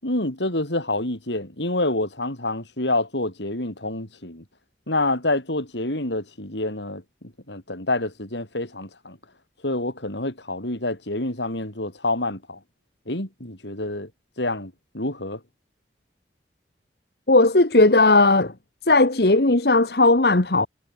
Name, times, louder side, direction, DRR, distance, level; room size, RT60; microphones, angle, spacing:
voice 1, 0.0-4.4 4.9-9.2 9.6-12.6 13.1-14.1 14.4-15.4, left 2 dB, 85° left, 6.3 m, -27 dB
voice 2, 17.3-18.5 18.8-20.7, left 2 dB, 65° left, 1.5 m, -17 dB
head